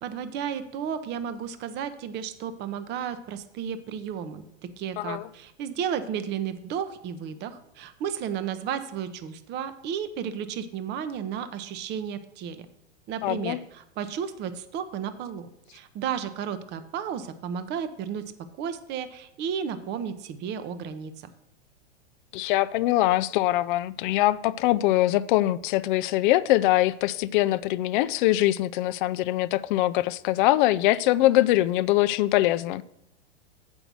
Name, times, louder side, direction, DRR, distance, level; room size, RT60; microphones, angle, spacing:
voice 1, 0.0-12.7 13.1-18.3 18.6-21.3, right 8 dB, 30° right, 0.7 m, -33 dB
voice 2, 13.2-13.6 22.3-32.8, left 16 dB, 50° left, 0.4 m, -23 dB
7.8 x 5.3 x 6.1 m
hypercardioid pair, 115°, 34 cm